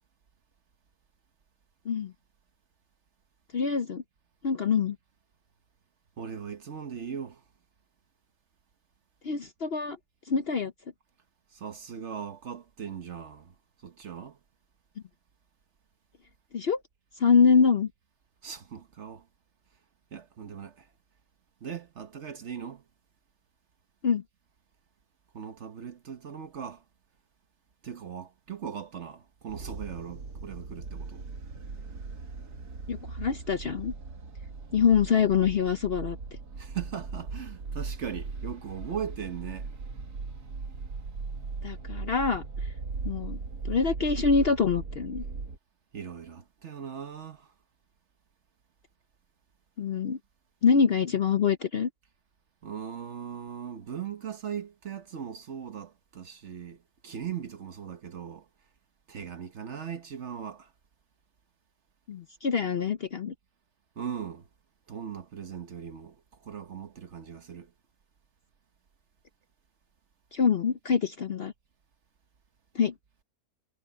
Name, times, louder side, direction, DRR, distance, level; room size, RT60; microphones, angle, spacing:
voice 1, 3.5-4.0 4.4-5.0 9.2-10.0 10.3-10.7 16.5-16.8 17.2-17.9 24.0-24.2 32.9-33.9 34.7-36.2 41.6-42.4 43.0-43.4 43.6-45.2 49.8-50.2 50.6-51.9 62.1-63.3 70.3-71.5 72.7-72.9, left 6 dB, 50° left, 0.8 m, -25 dB
voice 2, 6.2-7.4 11.5-13.5 13.8-14.4 18.4-19.2 20.1-20.9 21.6-22.8 25.3-26.8 27.8-31.2 36.6-39.7 45.9-47.5 52.6-58.4 59.1-60.7 64.0-64.5 64.9-66.2 66.4-67.7, right 8 dB, 50° right, 1.2 m, -39 dB
sound 1, 29.5-45.6, right 4 dB, 80° right, 2.4 m, -38 dB
omnidirectional pair, 1.7 m